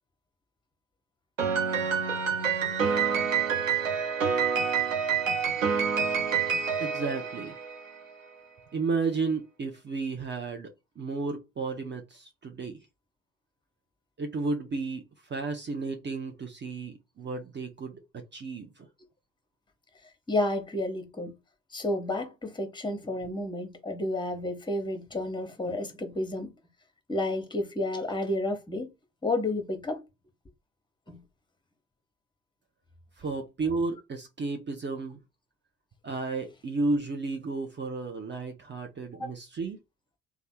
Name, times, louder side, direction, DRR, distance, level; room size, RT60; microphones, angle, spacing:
Piano, 1.4-7.9, right 6 dB, 90° right, 0.7 m, -27 dB
voice 1, 6.8-7.6 8.7-12.9 14.2-18.9 33.2-35.2 36.0-39.8, right 3 dB, 30° right, 0.8 m, -33 dB
voice 2, 20.3-21.3 21.7-26.5 27.1-28.9 29.2-30.0 31.1-31.2 39.2-39.3, left 2 dB, 10° left, 1.2 m, -31 dB
3.2 x 2.3 x 4.4 m
figure-of-eight pair, 50°, 38 cm